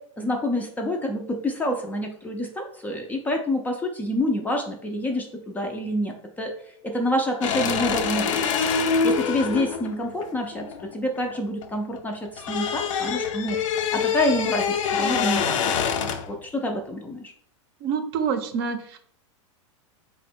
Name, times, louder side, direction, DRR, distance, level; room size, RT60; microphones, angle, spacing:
voice 1, 0.2-6.5 6.8-8.5 9.0-10.7 10.9-13.6 13.9-15.7 16.3-17.3, left 1 dB, 10° left, 2 dB, 0.3 m, -27 dB
sound 1, 7.4-11.7 12.0-16.4, left 6 dB, 85° left, 0.5 m, -25 dB
voice 2, 17.8-19.0, right 6 dB, 50° right, 8 dB, 0.6 m, -27 dB
4.2 x 2.2 x 4.2 m, 0.63 s
supercardioid pair, 135°, 16 cm